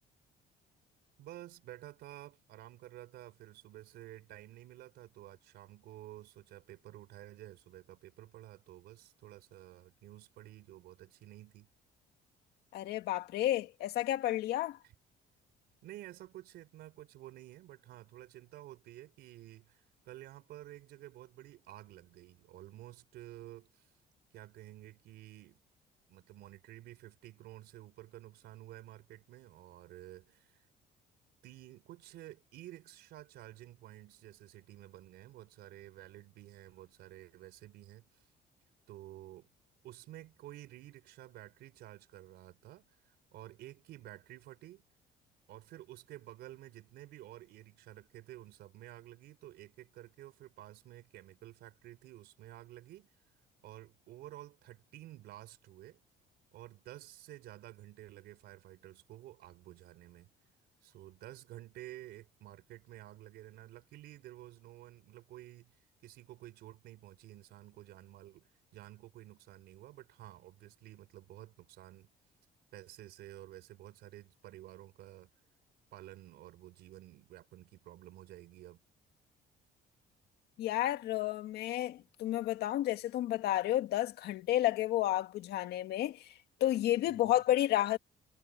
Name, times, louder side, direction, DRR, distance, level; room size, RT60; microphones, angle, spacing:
voice 1, 1.2-11.7 14.8-14.9 15.8-23.9 24.3-25.6 26.1-30.7 31.4-38.3 38.9-39.5 39.8-44.8 45.5-53.3 53.6-56.0 56.5-60.3 60.8-72.1 72.7-75.3 75.9-78.8 87.1-87.3, right 15 dB, 75° right, 4.1 m, -52 dB
voice 2, 12.7-14.8 80.6-86.3 86.6-88.0, left 13 dB, 75° left, 1.7 m, -31 dB
cardioid pair, 110°, 17 cm